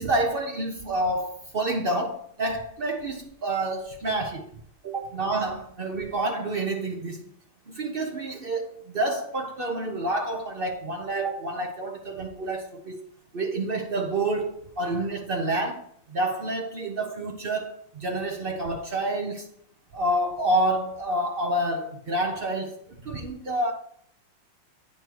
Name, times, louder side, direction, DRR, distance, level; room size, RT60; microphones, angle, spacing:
voice 1, 0.0-4.5 4.8-7.2 7.7-13.0 13.3-19.5 19.9-22.8 23.0-23.7, right 1 dB, 65° right, 0.5 m, -28 dB
9.1 x 4.3 x 4.6 m
omnidirectional pair, 2.2 m